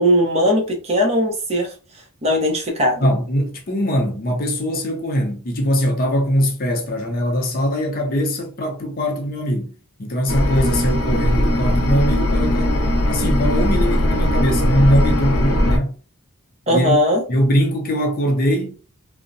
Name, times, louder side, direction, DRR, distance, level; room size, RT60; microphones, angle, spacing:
voice 1, 0.0-1.7 2.2-3.1 16.7-17.2, equal, 30° right, 0.7 m, -18 dB
voice 2, 3.0-9.7 10.0-12.8 13.1-16.0 16.7-17.0 17.3-18.8, equal, 45° left, 0.5 m, -21 dB
sound 1, 10.3-15.8, left 1 dB, 85° left, 0.5 m, -19 dB
2.6 x 2.1 x 2.5 m
head